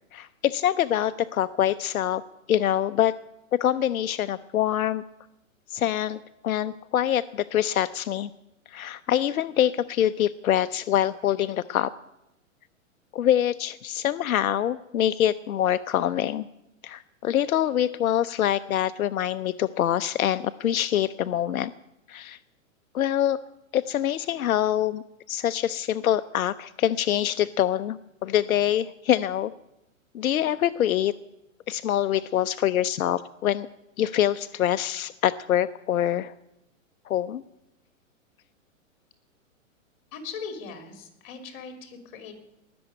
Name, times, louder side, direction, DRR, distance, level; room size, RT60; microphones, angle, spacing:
voice 1, 0.1-2.2 2.5-3.1 3.5-5.0 5.7-8.3 8.7-11.9 13.1-16.5 16.8-21.7 22.1-22.4 22.9-23.4 23.7-29.5 30.1-31.1 31.7-33.7 34.0-36.3 37.1-37.4, left 11 dB, 90° left, 14 dB, 0.6 m, -25 dB
voice 2, 40.1-42.3, left 5 dB, 45° left, 7 dB, 3.2 m, -39 dB
19.5 x 7.0 x 8.9 m, 0.90 s
hypercardioid pair, 130°, 41 cm